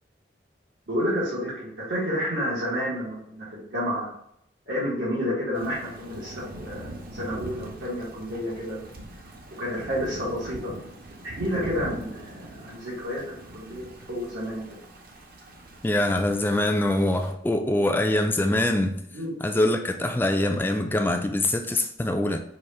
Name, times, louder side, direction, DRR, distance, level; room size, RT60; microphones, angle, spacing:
voice 1, 0.9-4.1 4.7-8.8 9.6-10.7 11.2-14.8 19.1-19.3, equal, 85° right, -8 dB, 1.8 m, -30 dB
Thunder / Rain, 5.5-17.3, right 1 dB, 50° right, 0.7 m, -42 dB
voice 2, 15.8-19.0 19.4-22.4, left 1 dB, 10° left, 5 dB, 0.3 m, -24 dB
4.8 x 2.5 x 4.2 m, 0.73 s
head